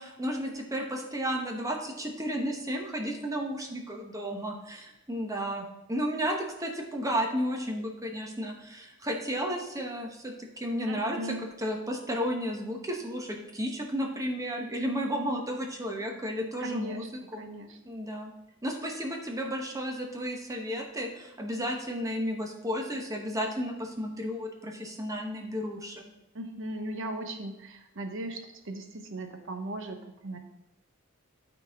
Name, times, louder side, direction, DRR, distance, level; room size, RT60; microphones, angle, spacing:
voice 1, 0.0-17.0 17.3-17.4 17.8-18.3 18.6-26.1, equal, 15° right, 1 dB, 1.0 m, -33 dB
voice 2, 10.9-11.5 16.6-17.1 17.4-17.8 26.3-30.4, right 1 dB, 65° right, 6 dB, 0.9 m, -38 dB
12.0 x 4.1 x 3.5 m, 0.91 s
head